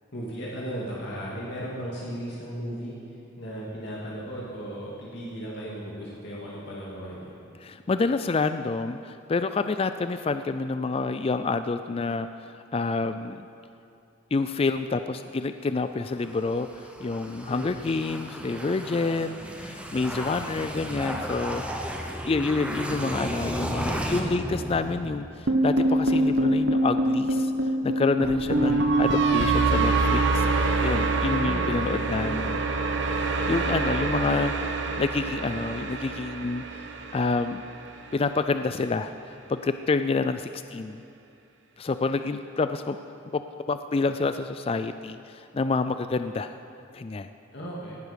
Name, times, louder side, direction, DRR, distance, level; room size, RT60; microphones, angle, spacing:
voice 1, 0.1-7.3 17.5-17.8 20.1-20.4 28.4-28.7 31.4-32.8 47.5-48.0, equal, 60° left, -6 dB, 2.3 m, -36 dB
voice 2, 7.6-13.5 14.3-27.5 27.8-32.6 33.2-36.6 37.1-37.6 38.1-39.1 39.5-41.0 41.8-43.0 43.3-43.4 43.7-46.6 46.9-47.3, left 3 dB, 30° left, 10 dB, 0.3 m, -28 dB
sound 1, 16.1-25.5, equal, 5° right, 1.0 m, -34 dB
sound 2, 25.5-37.7, right 2 dB, 60° right, 1.1 m, -25 dB
18.0 x 11.0 x 5.2 m, 2.6 s
head